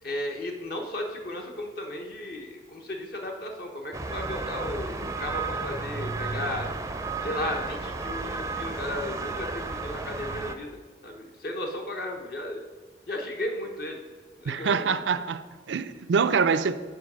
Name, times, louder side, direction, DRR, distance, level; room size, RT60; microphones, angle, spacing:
voice 1, 0.0-6.7 7.2-12.6 13.1-14.0 14.4-14.9, left 1 dB, 55° left, 0.8 m, -35 dB
sound 1, 3.9-10.6, right 3 dB, 15° right, 0.4 m, -33 dB
voice 2, 14.5-16.8, right 5 dB, 85° right, 0.4 m, -25 dB
8.4 x 4.7 x 6.1 m
head